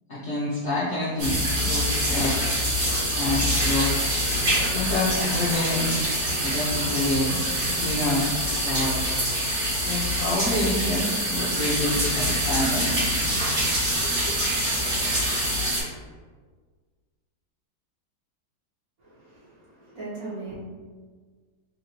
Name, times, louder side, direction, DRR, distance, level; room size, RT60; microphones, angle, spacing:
voice 1, 0.1-2.5 3.1-4.0 4.6-5.9 6.4-7.4 7.7-8.3 8.6-9.0 9.8-13.0 14.0-14.4, left 1 dB, 60° left, -9 dB, 0.7 m, -27 dB
sound 1, 1.2-15.8, equal, 70° right, 2.2 m, -25 dB
voice 2, 19.0-20.5, right 3 dB, 55° right, -9 dB, 1.6 m, -39 dB
4.1 x 2.6 x 2.9 m, 1.5 s
omnidirectional pair, 1.9 m